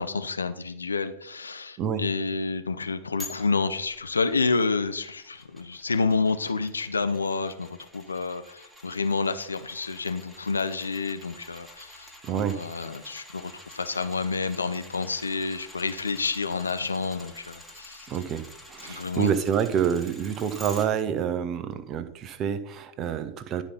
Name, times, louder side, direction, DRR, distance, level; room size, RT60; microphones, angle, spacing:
voice 1, 0.0-18.1 18.8-19.4, left 4 dB, 75° left, 9 dB, 0.7 m, -29 dB
sound 1, 3.2-20.9 21.3-21.4, left 1 dB, ahead, 2.0 m, -48 dB
voice 2, 12.2-12.6 18.1-23.6, right 8 dB, 30° right, 10 dB, 1.0 m, -28 dB
12.0 x 5.2 x 5.4 m, 0.74 s
figure-of-eight pair, 90°, 0 cm